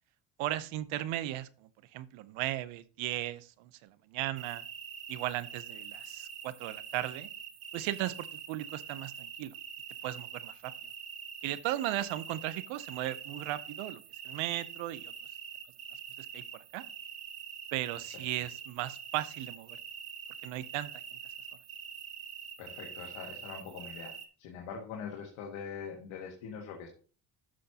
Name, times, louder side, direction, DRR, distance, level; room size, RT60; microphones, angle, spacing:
voice 1, 0.4-4.6 5.1-7.3 7.7-9.5 10.0-10.7 11.4-14.0 14.2-15.1 16.2-16.8 17.7-19.8 20.4-21.0, right 14 dB, 85° right, 16 dB, 0.7 m, -36 dB
sound 1, 4.4-24.3, right 7 dB, 50° right, 1.2 m, -45 dB
voice 2, 22.6-24.1 24.4-26.9, left 6 dB, 85° left, 0 dB, 1.7 m, -43 dB
12.5 x 6.3 x 2.8 m, 0.39 s
cardioid pair, 95°, 46 cm